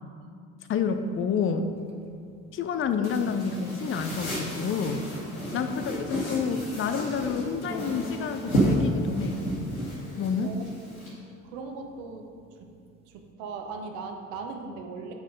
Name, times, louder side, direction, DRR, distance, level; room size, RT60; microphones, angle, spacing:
voice 1, 0.7-1.7 2.5-5.0 5.5-9.4 10.2-10.5, left 6 dB, 30° left, 8 dB, 0.6 m, -29 dB
sound 1, 0.8-13.3, equal, 15° right, 1.0 m, -47 dB
sound 2, 3.0-11.1, right 1 dB, 85° left, 1.5 m, -31 dB
voice 2, 5.5-5.9 10.4-10.7 11.4-12.3 12.6-12.7 13.1-15.1, right 4 dB, 65° right, 4 dB, 1.0 m, -38 dB
8.1 x 5.5 x 5.0 m, 2.3 s
figure-of-eight pair, 55°, 41 cm